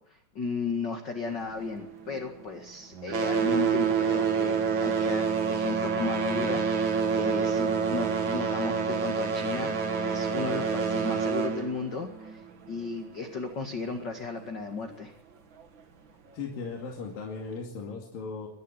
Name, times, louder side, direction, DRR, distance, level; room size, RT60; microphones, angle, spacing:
voice 1, 0.1-15.1, left 4 dB, 40° left, 3 dB, 2.1 m, -35 dB
sound 1, 1.3-2.6 2.9-13.2 14.1-14.2 14.9-15.0 15.6-15.7, right 6 dB, 45° right, 1.8 m, -28 dB
voice 2, 16.3-18.5, left 4 dB, 85° left, -1 dB, 4.2 m, -37 dB
22.5 x 12.0 x 9.9 m, 0.72 s
omnidirectional pair, 3.9 m